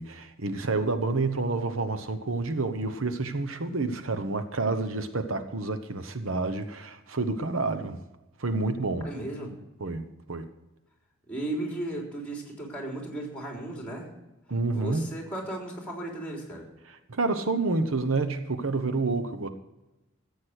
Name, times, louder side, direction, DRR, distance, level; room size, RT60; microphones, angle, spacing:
voice 1, 0.0-8.0 8.4-9.1 9.8-10.5 14.5-15.0 17.1-19.5, right 3 dB, 85° right, 10 dB, 1.0 m, -29 dB
voice 2, 9.0-9.5 11.3-14.1 14.7-16.6, right 1 dB, 5° left, -1 dB, 3.6 m, -35 dB
14.0 x 8.5 x 6.4 m, 0.99 s
head